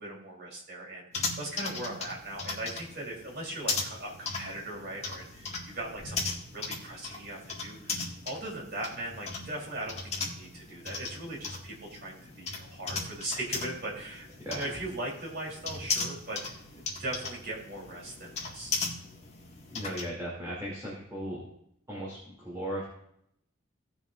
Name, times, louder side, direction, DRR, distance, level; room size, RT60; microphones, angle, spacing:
voice 1, 0.0-8.0 8.3-18.8, right 1 dB, 55° right, -3 dB, 3.5 m, -39 dB
sound 1, 1.1-20.1, left 4 dB, 35° left, 1.9 m, -38 dB
voice 2, 19.7-21.4 21.9-22.9, right 1 dB, 15° right, -7 dB, 2.7 m, -37 dB
18.0 x 7.0 x 2.5 m, 0.73 s
head